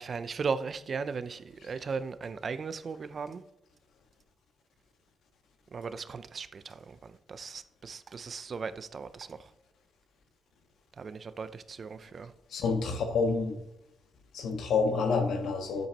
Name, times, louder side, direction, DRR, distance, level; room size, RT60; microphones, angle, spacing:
voice 1, 0.0-3.4 5.7-9.5 11.0-12.3, right 5 dB, 45° right, 0.6 m, -37 dB
voice 2, 12.5-13.6 14.3-15.9, left 4 dB, 80° left, 1.6 m, -28 dB
10.5 x 8.2 x 3.0 m
cardioid pair, 110°, 0 cm